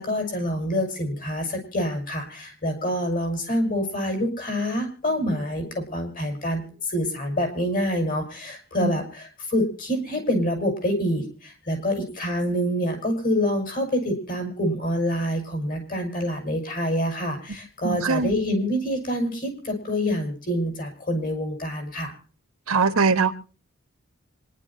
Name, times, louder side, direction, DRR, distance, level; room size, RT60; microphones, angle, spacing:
voice 1, 0.0-22.1, equal, 40° left, 5.8 m, -26 dB
voice 2, 17.8-18.3 22.7-23.3, right 4 dB, 80° right, 1.5 m, -21 dB
26.5 x 11.5 x 2.8 m
head